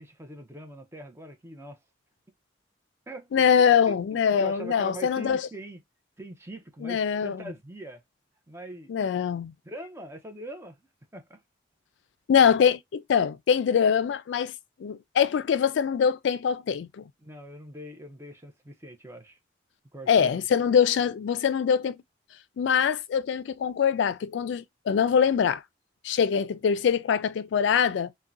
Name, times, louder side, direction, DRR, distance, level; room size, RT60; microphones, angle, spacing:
voice 1, 0.0-1.8 3.1-3.3 3.9-5.8 6.2-8.0 8.5-8.9 9.6-10.8 11.1-11.4 17.2-19.4 19.9-20.3, right 1 dB, 15° right, 0.6 m, -42 dB
voice 2, 3.3-5.4 6.8-7.4 8.9-9.5 12.3-14.5 14.8-17.0 20.1-22.0 22.6-25.6 26.0-28.1, left 7 dB, 75° left, 0.3 m, -23 dB
3.6 x 2.1 x 2.5 m
head